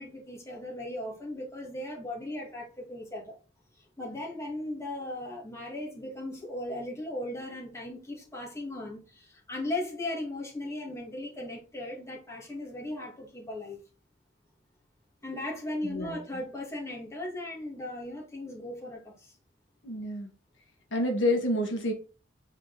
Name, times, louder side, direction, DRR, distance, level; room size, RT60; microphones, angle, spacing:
voice 1, 0.0-3.4 4.0-13.8 15.2-19.3, left 1 dB, 15° left, 2.4 m, -37 dB
voice 2, 15.8-16.2 19.8-20.3 20.9-21.9, left 1 dB, 70° left, 1.8 m, -28 dB
8.4 x 4.2 x 4.2 m
head